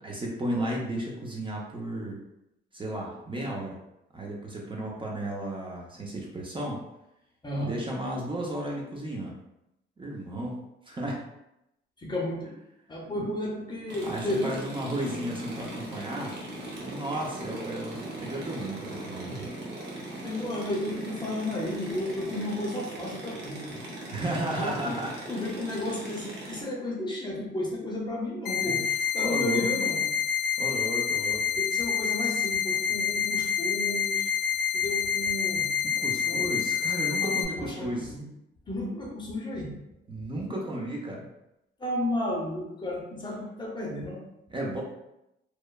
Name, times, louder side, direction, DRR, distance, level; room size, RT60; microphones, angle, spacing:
voice 1, 0.0-2.2 2.7-3.8 4.1-6.8 7.6-9.4 10.0-11.2 13.1-13.3 14.1-16.3 16.8-19.5 24.1-25.1 28.6-28.8 29.2-29.6 30.6-31.4 35.8-38.1 40.1-41.3 44.5-44.8, right 1 dB, 25° right, -2 dB, 0.6 m, -33 dB
voice 2, 7.4-7.8 12.0-12.5 12.9-14.6 20.2-23.8 24.5-25.0 25.3-28.8 29.1-30.1 31.6-34.3 34.7-35.7 36.2-36.6 37.1-38.3 38.7-39.7 41.8-44.2, left 1 dB, 20° left, -2 dB, 0.7 m, -33 dB
sound 1, 13.9-26.6, right 1 dB, 60° right, 0.9 m, -39 dB
sound 2, 28.5-37.5, left 8 dB, 55° left, 0.4 m, -27 dB
3.0 x 2.1 x 2.3 m, 0.85 s
cardioid pair, 90°, 20 cm